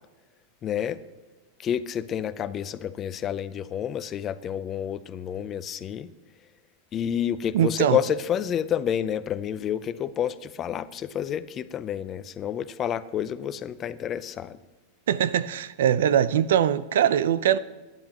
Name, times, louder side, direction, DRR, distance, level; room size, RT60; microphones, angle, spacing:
voice 1, 0.6-1.0 1.6-6.1 6.9-14.6, left 9 dB, 25° left, 0.5 m, -29 dB
voice 2, 7.5-8.0 15.1-17.6, right 9 dB, 85° right, 0.6 m, -22 dB
24.0 x 10.5 x 3.0 m
supercardioid pair, 155°, 0 cm